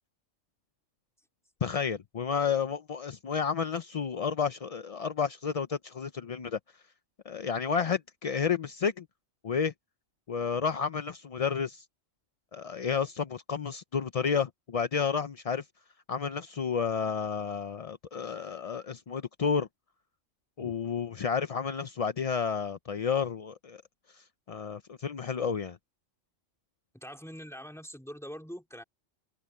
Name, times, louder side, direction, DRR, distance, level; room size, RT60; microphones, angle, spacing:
voice 1, 1.6-6.6 7.2-9.1 9.4-9.7 10.3-11.8 12.5-15.6 16.1-19.7 20.6-23.8 24.1-25.8, left 6 dB, 50° left, 0.4 m, -31 dB
voice 2, 26.9-28.8, equal, ahead, 3.2 m, -43 dB
open air
omnidirectional pair, 1.4 m